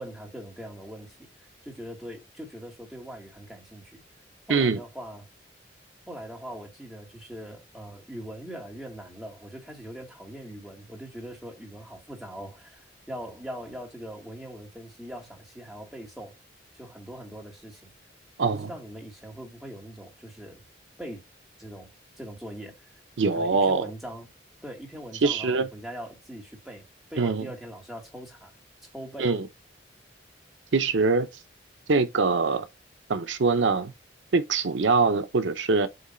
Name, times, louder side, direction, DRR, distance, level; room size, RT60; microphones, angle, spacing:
voice 1, 0.0-4.0 4.5-5.3 6.1-16.4 16.7-17.9 18.4-20.7 21.0-21.2 21.6-21.9 22.2-22.9 23.2-24.3 24.6-26.8 27.1-28.5 28.9-29.4, equal, ahead, 1.9 m, -41 dB
voice 2, 18.4-18.7 23.2-23.9 25.2-25.7 27.2-27.5 29.2-29.4 30.7-31.3 31.9-32.7 33.1-33.9 34.3-35.9, right 4 dB, 80° right, 0.6 m, -23 dB
7.8 x 3.2 x 4.2 m
head